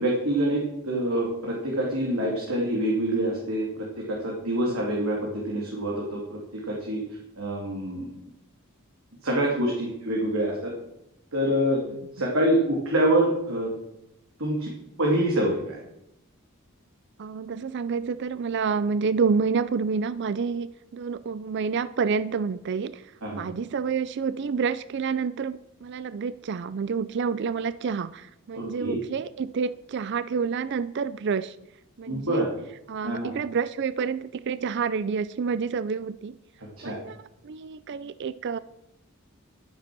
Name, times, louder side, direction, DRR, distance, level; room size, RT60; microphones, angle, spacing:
voice 1, 0.0-7.0 7.4-8.1 9.2-10.7 11.3-11.8 12.2-13.7 14.4-14.7 15.0-15.8 23.2-23.4 28.5-28.9 32.1-32.5 33.0-33.3 36.8-37.0, right 1 dB, 70° right, -2 dB, 2.7 m, -26 dB
voice 2, 17.2-31.6 32.0-32.5 32.9-36.4 36.8-38.6, right 5 dB, 55° right, 16 dB, 0.4 m, -28 dB
12.0 x 9.6 x 6.1 m, 0.83 s
head